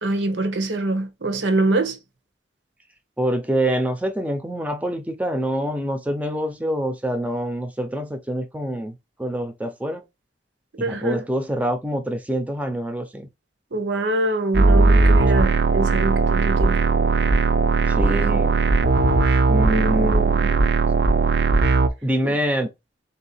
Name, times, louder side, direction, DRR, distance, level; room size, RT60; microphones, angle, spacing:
voice 1, 0.0-2.0 10.8-11.2 13.7-16.8 19.7-20.3 22.2-22.3, right 2 dB, 85° right, 0.9 m, -24 dB
voice 2, 3.2-10.0 10.8-13.3 17.9-18.5 19.5-20.7 22.0-22.7, right 1 dB, 10° right, 0.5 m, -26 dB
sound 1, 14.5-21.9, right 3 dB, 65° right, 0.5 m, -18 dB
3.6 x 2.7 x 4.1 m
head